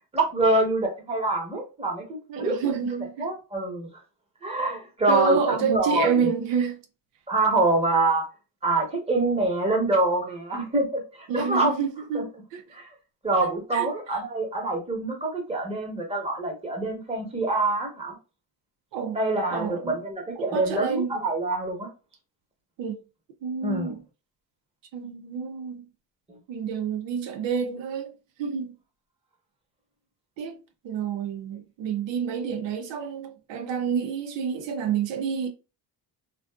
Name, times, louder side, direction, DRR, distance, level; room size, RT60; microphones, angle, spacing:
voice 1, 0.1-2.0 2.4-3.9 4.4-6.3 7.3-8.2 8.6-11.8 12.1-12.2 12.7-12.9 13.2-18.2 19.1-21.9 23.6-24.0 26.3-26.4, right 2 dB, 15° right, 0.9 m, -25 dB
voice 2, 2.3-3.3 5.1-6.8 11.3-12.6 13.4-13.9 18.9-19.2 19.5-20.0 20.4-21.1 22.8-23.0 23.4-24.0 24.9-25.8 26.5-28.1 28.4-28.7 30.4-30.6 30.8-35.5, right 7 dB, 85° right, 0.6 m, -29 dB
2.5 x 2.3 x 2.2 m
cardioid pair, 95°, 42 cm